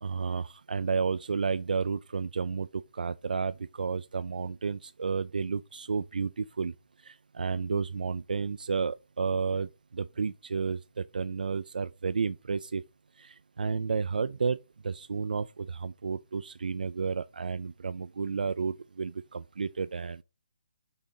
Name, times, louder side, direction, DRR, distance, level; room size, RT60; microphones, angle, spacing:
voice 1, 0.0-12.8 13.2-14.6 14.8-20.2, right 5 dB, 80° right, 0.4 m, -32 dB
6.2 x 3.8 x 5.2 m
hypercardioid pair, 180°, 5 cm